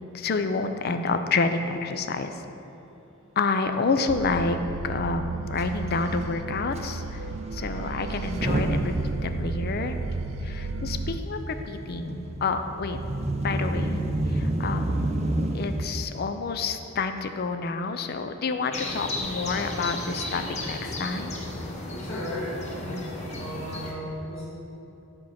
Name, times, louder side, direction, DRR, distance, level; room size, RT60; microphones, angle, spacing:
voice 1, 0.1-2.3 3.4-4.6 4.8-7.3 7.5-8.9 9.2-10.0 10.4-13.0 13.4-14.0 14.3-21.3, left 4 dB, 50° left, 8 dB, 0.5 m, -29 dB
sound 1, 4.1-11.2, right 3 dB, 80° right, 0.4 m, -33 dB
Motor vehicle (road) / Engine starting / Accelerating revving vroom, 5.6-5.7 5.9-6.1 6.8-6.9 8.1-15.9, right 1 dB, 30° right, 0.5 m, -29 dB
sound 2, 18.7-23.9, left 2 dB, 35° left, 0.9 m, -34 dB
voice 2, 21.9-24.5, left 1 dB, 75° left, -6 dB, 1.7 m, -35 dB
7.5 x 4.5 x 5.7 m, 3.0 s
head